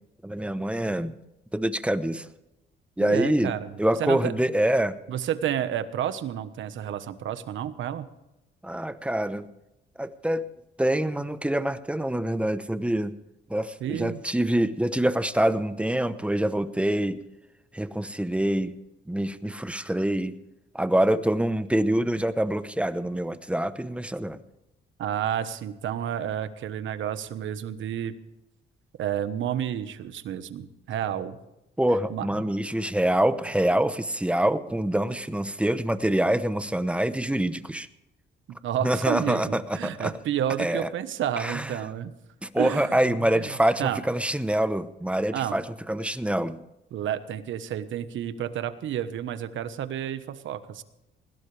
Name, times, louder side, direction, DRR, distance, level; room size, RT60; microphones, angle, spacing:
voice 1, 0.2-1.1 1.5-2.3 3.0-3.5 3.8-4.9 8.6-9.4 10.0-10.5 10.8-13.1 13.5-17.2 17.7-18.7 19.1-20.4 20.7-24.4 31.8-37.9 38.8-40.1 40.6-40.9 41.4-41.7 42.4-46.6, right 1 dB, 5° right, 12 dB, 0.9 m, -25 dB
voice 2, 3.0-4.3 5.1-8.1 13.8-14.2 25.0-28.1 29.0-31.4 32.1-32.5 38.6-42.1 42.6-43.5 43.8-44.0 45.3-45.6 46.9-50.8, right 10 dB, 75° right, 11 dB, 1.3 m, -30 dB
20.0 x 16.5 x 3.4 m, 0.92 s
cardioid pair, 90°, 20 cm